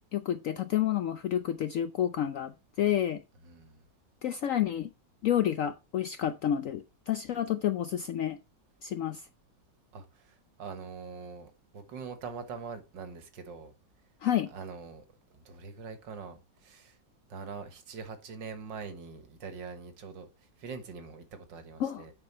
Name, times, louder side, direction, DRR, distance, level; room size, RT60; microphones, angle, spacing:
voice 1, 0.1-2.5 2.8-3.2 4.2-4.9 5.2-8.4 8.8-9.2 14.2-14.5 21.8-22.0, left 10 dB, 75° left, 0.7 m, -29 dB
voice 2, 3.4-3.9 9.9-13.7 14.5-15.0 15.3-17.0 17.3-22.1, right 5 dB, 90° right, 2.0 m, -43 dB
9.8 x 4.7 x 4.3 m
omnidirectional pair, 1.9 m